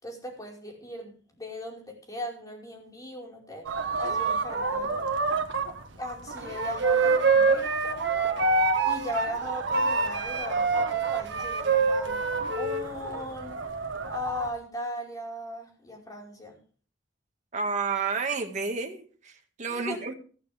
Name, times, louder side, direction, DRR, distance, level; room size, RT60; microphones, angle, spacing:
voice 1, 0.0-5.1 6.0-8.1 8.8-13.6 14.1-16.5 19.7-20.0, left 1 dB, 20° left, -1 dB, 5.0 m, -38 dB
sound 1, 3.6-14.5, right 4 dB, 90° right, 1.6 m, -32 dB
Wind instrument woodwind instrument, 6.6-9.3 9.7-12.8, right 4 dB, 65° right, 1.9 m, -25 dB
voice 2, 17.5-19.3 19.6-20.1, right 4 dB, 40° right, 4 dB, 2.0 m, -30 dB
15.5 x 14.5 x 3.6 m, 0.41 s
head